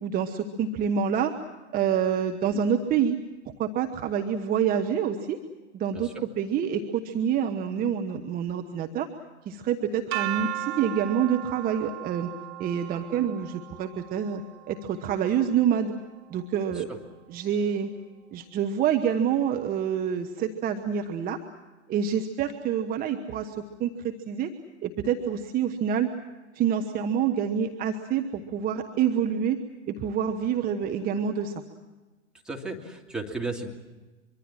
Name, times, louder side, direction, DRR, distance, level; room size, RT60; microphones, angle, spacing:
voice 1, 0.0-1.3 1.7-3.2 3.6-5.4 5.7-9.1 9.5-12.3 12.6-14.4 14.7-15.9 16.3-16.9 17.3-17.9 18.3-21.4 21.9-24.5 24.8-26.1 26.5-29.6 29.9-31.5, right 8 dB, 25° right, 5 dB, 1.2 m, -27 dB
voice 2, 5.9-6.3 16.7-17.0 32.4-33.7, right 3 dB, ahead, -1 dB, 2.7 m, -35 dB
sound 1, 10.1-16.0, right 16 dB, 45° right, 2.3 m, -37 dB
24.5 x 24.0 x 7.4 m, 1.2 s
figure-of-eight pair, 95°, 35 cm